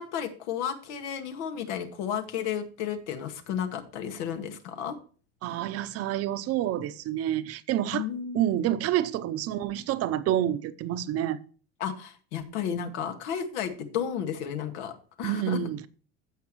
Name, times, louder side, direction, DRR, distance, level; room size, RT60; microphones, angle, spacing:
voice 1, 0.0-5.0 7.9-8.5 11.8-15.6, left 8 dB, 90° left, 2.0 m, -33 dB
voice 2, 5.4-8.1 8.3-11.4 15.2-15.9, right 11 dB, 45° right, 0.7 m, -28 dB
15.5 x 5.9 x 3.1 m
cardioid pair, 145°, 34 cm